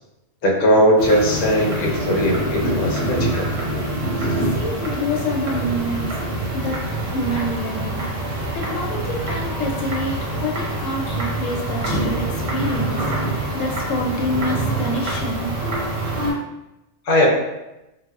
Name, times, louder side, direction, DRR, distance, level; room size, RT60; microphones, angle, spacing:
voice 1, 0.4-3.4 17.0-17.3, equal, 50° left, -2 dB, 0.7 m, -18 dB
sound 1, 1.0-16.3, right 1 dB, 70° right, 1.2 m, -25 dB
voice 2, 4.4-6.2 6.5-13.1 13.5-15.6, left 1 dB, 75° left, -1 dB, 0.9 m, -27 dB
4.0 x 2.2 x 2.3 m, 0.95 s
omnidirectional pair, 1.4 m